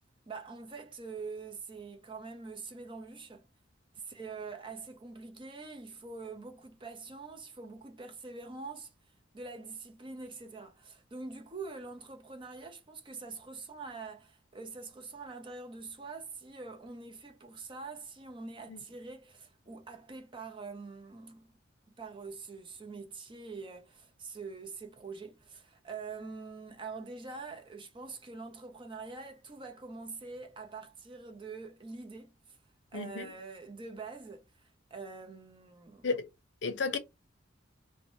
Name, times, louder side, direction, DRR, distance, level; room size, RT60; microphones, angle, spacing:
voice 1, 0.3-3.4 4.0-8.9 9.3-21.5 22.0-32.4 32.9-34.5 34.9-36.1, right 4 dB, 25° right, 0.6 m, -44 dB
voice 2, 32.9-33.3 36.0-36.3 36.6-37.0, left 4 dB, 65° left, 0.6 m, -33 dB
3.1 x 2.1 x 2.6 m
head